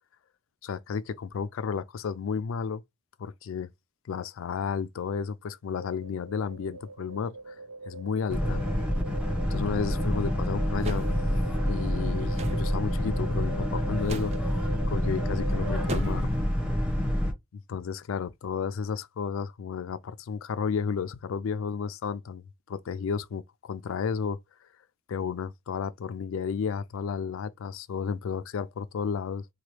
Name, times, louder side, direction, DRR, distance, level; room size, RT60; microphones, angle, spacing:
voice 1, 0.6-2.8 3.2-3.7 4.1-7.6 7.9-8.6 9.5-11.1 11.6-14.3 14.9-16.3 17.5-24.4 25.1-29.4, left 6 dB, 65° left, 0.3 m, -32 dB
sound 1, 5.8-16.0, right 3 dB, 85° right, 0.5 m, -41 dB
Boat Water vehicle, 8.3-17.3, equal, 5° right, 0.8 m, -28 dB
sound 2, 10.8-11.1 12.4-12.6 14.0-14.4 15.9-16.3, right 3 dB, 30° right, 0.3 m, -37 dB
2.9 x 2.3 x 3.2 m
head